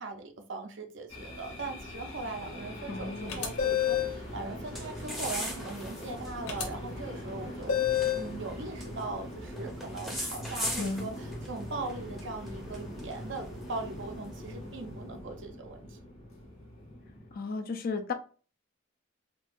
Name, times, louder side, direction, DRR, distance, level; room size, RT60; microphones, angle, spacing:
voice 1, 0.0-7.7 8.2-16.0, right 3 dB, 55° right, 0.6 m, -40 dB
sound 1, 1.1-17.4, left 1 dB, 60° left, 1.4 m, -42 dB
voice 2, 2.9-3.4 10.8-11.1 17.3-18.1, left 4 dB, 40° left, 0.4 m, -34 dB
sound 2, 3.0-14.8, equal, ahead, 0.6 m, -42 dB
sound 3, 3.3-4.2 6.5-6.6 7.7-8.3, left 10 dB, 85° left, 0.8 m, -28 dB
4.4 x 2.3 x 2.5 m
head